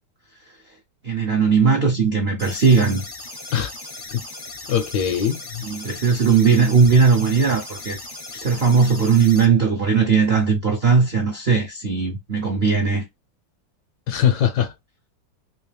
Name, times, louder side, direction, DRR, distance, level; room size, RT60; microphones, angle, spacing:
voice 1, 1.0-3.0 5.7-8.0 8.3-13.0, right 5 dB, 65° right, 0.6 m, -18 dB
sound 1, 2.4-9.4, left 2 dB, 40° left, 0.3 m, -37 dB
voice 2, 4.7-5.6 14.1-14.7, left 9 dB, 70° left, 1.1 m, -21 dB
3.3 x 2.9 x 3.2 m
omnidirectional pair, 2.1 m